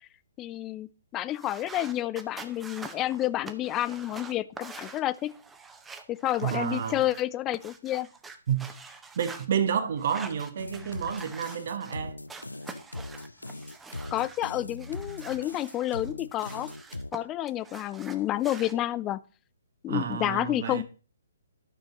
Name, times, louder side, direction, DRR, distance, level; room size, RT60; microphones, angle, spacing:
voice 1, 0.4-5.3 6.1-8.1 14.1-16.7 17.1-19.2 19.8-20.8, left 14 dB, 20° left, 0.4 m, -30 dB
sound 1, 1.3-7.2 7.5-9.5 10.0-12.0 12.3-14.4 14.8-17.2 17.5-18.7, right 4 dB, 10° right, 0.9 m, -46 dB
voice 2, 6.4-7.0 8.5-8.7 9.2-12.2 19.9-20.8, right 8 dB, 45° right, 0.9 m, -30 dB
sound 2, 10.6-17.1, left 2 dB, 80° left, 0.5 m, -40 dB
12.5 x 6.3 x 4.0 m
figure-of-eight pair, 130°, 0 cm